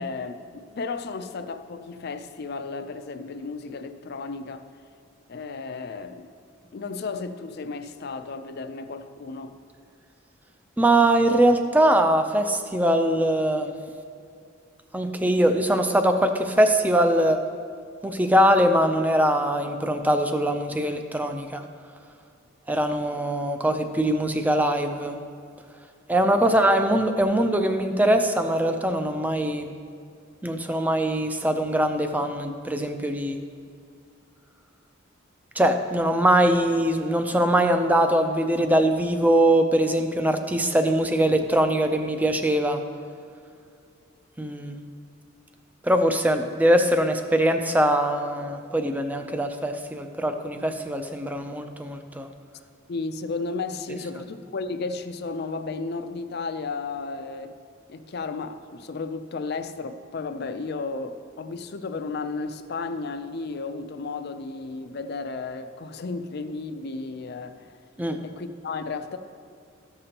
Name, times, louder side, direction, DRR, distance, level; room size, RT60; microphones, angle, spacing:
voice 1, 0.0-4.6 5.3-6.3 6.7-9.5 26.4-26.6 52.9-57.5 57.9-67.7 68.2-69.2, left 4 dB, 50° left, 9 dB, 0.4 m, -33 dB
voice 2, 10.8-13.7 14.9-17.4 18.0-21.6 22.7-25.2 26.1-29.7 30.4-33.4 35.6-42.8 44.4-44.7 45.8-52.3 68.0-68.2, right 1 dB, 10° right, 6 dB, 0.4 m, -22 dB
13.5 x 6.7 x 2.9 m, 2.3 s
head